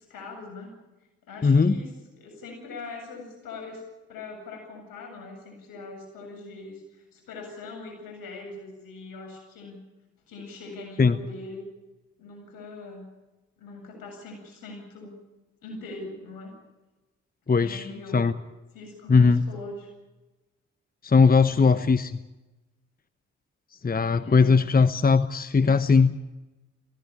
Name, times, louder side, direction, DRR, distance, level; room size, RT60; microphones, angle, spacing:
voice 1, 0.1-0.7 1.3-1.9 2.2-3.8 4.1-9.8 10.3-11.6 12.2-13.1 13.6-15.1 15.6-16.5 17.4-18.2 18.7-19.9 24.2-24.6, left 3 dB, 75° left, 2 dB, 8.0 m, -41 dB
voice 2, 1.4-1.8 11.0-11.2 17.5-17.8 18.1-18.3 19.1-19.5 21.0-22.2 23.8-26.2, left 4 dB, 25° left, 12 dB, 1.0 m, -19 dB
18.0 x 16.5 x 9.8 m, 1.1 s
hypercardioid pair, 40°, 35 cm